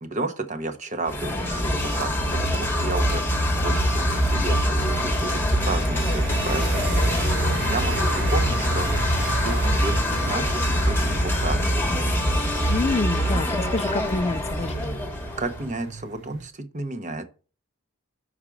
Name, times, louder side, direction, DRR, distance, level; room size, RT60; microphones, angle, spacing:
voice 1, 0.0-7.2 7.5-9.9 10.3-11.8 15.4-17.2, right 2 dB, 35° right, 0.9 m, -32 dB
sound 1, 1.1-15.8, equal, 10° left, 1.2 m, -24 dB
sound 2, 3.8-16.5, right 3 dB, 55° right, 1.4 m, -35 dB
voice 2, 12.7-15.1, left 3 dB, 30° left, 0.4 m, -27 dB
6.4 x 4.9 x 4.6 m
head